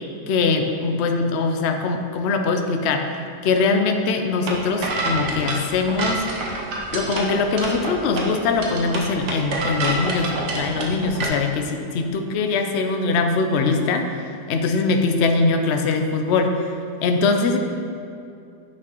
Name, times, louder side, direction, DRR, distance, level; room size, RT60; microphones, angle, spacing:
voice 1, 0.3-3.1 3.4-6.2 6.9-16.7 17.0-17.6, left 4 dB, 85° left, 5 dB, 0.5 m, -22 dB
sound 1, 4.4-11.3, right 2 dB, 70° right, 1.6 m, -27 dB
10.0 x 5.9 x 3.0 m, 2.5 s
omnidirectional pair, 1.8 m